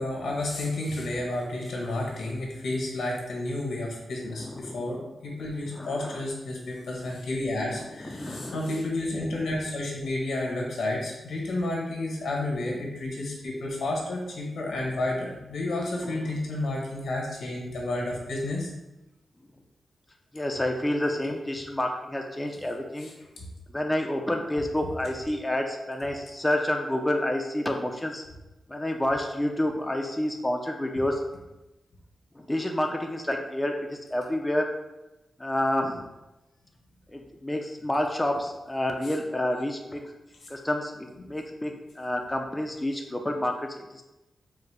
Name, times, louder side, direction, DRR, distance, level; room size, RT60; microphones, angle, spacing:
voice 1, 0.0-18.7 23.0-23.1 23.4-23.5, left 2 dB, 85° left, -2 dB, 1.3 m, -31 dB
voice 2, 4.4-4.9 5.7-6.2 7.8-8.6 16.0-16.4 20.3-23.1 23.7-28.2 28.7-31.2 32.3-34.7 35.4-36.1 37.1-40.0 40.5-44.0, left 1 dB, 15° left, 2 dB, 0.5 m, -29 dB
4.8 x 2.2 x 4.7 m, 0.99 s
cardioid pair, 90°, 0 cm